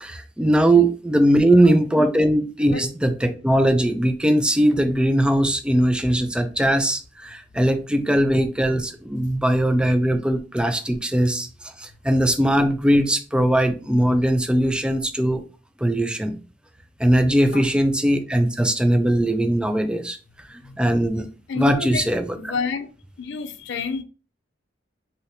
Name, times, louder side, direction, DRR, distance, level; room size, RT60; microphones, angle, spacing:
voice 1, 0.0-11.5 11.8-15.4 15.8-16.4 17.0-20.2 20.5-21.3 21.6-22.2, right 1 dB, 5° right, 0.3 m, -20 dB
voice 2, 1.3-1.7 2.7-2.8 17.5-17.7 20.6-21.2 21.5-22.9 23.2-24.0, left 5 dB, 65° left, 0.4 m, -30 dB
2.7 x 2.7 x 3.2 m
head